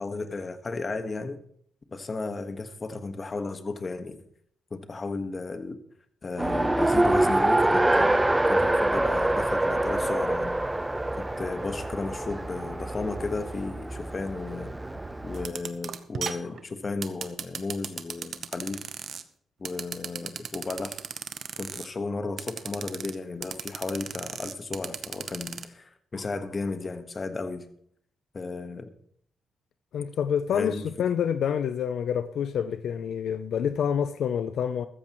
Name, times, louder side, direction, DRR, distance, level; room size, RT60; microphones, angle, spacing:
voice 1, 0.0-1.4 1.9-4.2 4.7-5.8 6.2-10.5 11.1-14.7 15.2-18.8 19.6-21.0 21.6-27.7 28.3-28.9 30.5-30.8, left 3 dB, 35° left, 1.3 m, -34 dB
Race car auto racing, 6.4-15.5, right 1 dB, 15° right, 0.7 m, -25 dB
sound 1, 15.3-19.2 19.6-21.9 22.4-23.2 23.4-25.6, right 7 dB, 60° right, 0.9 m, -35 dB
voice 2, 29.9-34.9, left 8 dB, 75° left, 0.5 m, -27 dB
14.5 x 13.5 x 3.1 m
cardioid pair, 70°, 0 cm